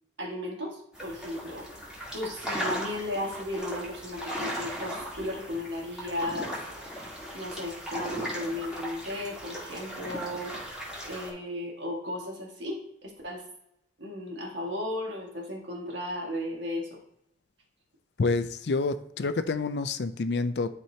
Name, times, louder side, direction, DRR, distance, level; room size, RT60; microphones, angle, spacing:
voice 1, 0.2-6.5 7.3-10.5 11.0-13.4 14.0-17.0, left 1 dB, 80° right, -1 dB, 1.8 m, -35 dB
sound 1, 0.9-11.3, equal, 5° right, 1.8 m, -37 dB
voice 2, 18.2-20.7, left 3 dB, 65° left, 12 dB, 0.5 m, -28 dB
11.0 x 4.3 x 2.8 m, 0.78 s
head